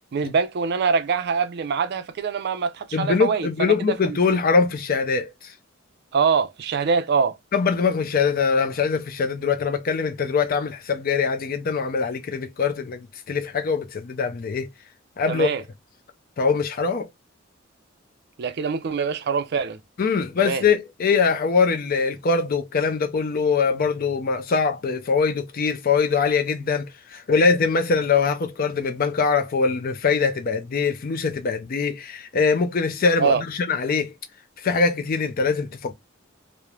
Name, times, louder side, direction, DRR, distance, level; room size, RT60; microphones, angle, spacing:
voice 1, 0.1-4.2 6.1-7.4 15.3-15.6 18.4-19.8 20.4-20.6 33.2-33.4, right 5 dB, 55° right, 0.4 m, -24 dB
voice 2, 2.9-5.5 7.5-14.7 15.2-15.5 16.4-17.1 20.0-34.1 34.6-35.9, left 5 dB, 45° left, 0.4 m, -23 dB
3.0 x 2.0 x 2.3 m
head